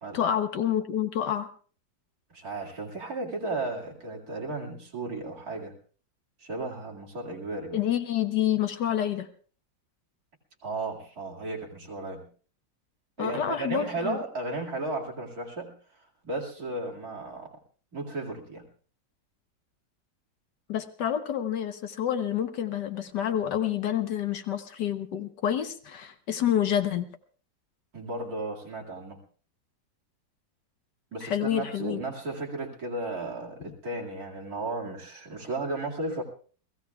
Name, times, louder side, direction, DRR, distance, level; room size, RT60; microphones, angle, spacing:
voice 1, 0.1-1.5 7.7-9.3 13.2-14.2 20.7-27.1 31.2-32.0, left 10 dB, 70° left, 9 dB, 1.5 m, -28 dB
voice 2, 2.3-5.7 6.4-7.8 10.6-12.3 13.2-17.6 17.9-18.6 27.9-29.2 31.1-36.2, right 2 dB, 50° right, -1 dB, 2.8 m, -34 dB
29.5 x 16.5 x 2.3 m, 0.42 s
omnidirectional pair, 2.0 m